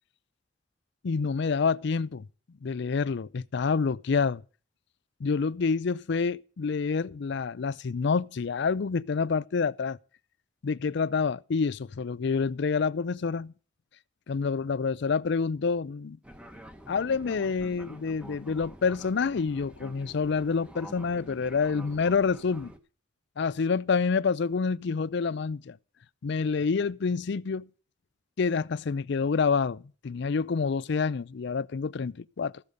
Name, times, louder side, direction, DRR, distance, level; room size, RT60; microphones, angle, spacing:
voice 1, 1.0-2.3 2.6-4.4 5.2-10.0 10.6-13.5 14.3-16.2 16.9-22.7 23.4-25.8 26.2-27.7 28.4-32.6, left 5 dB, 65° left, 0.5 m, -28 dB
Fixed-wing aircraft airplane, 16.2-22.8, equal, 5° right, 1.2 m, -47 dB
14.5 x 6.8 x 6.3 m
head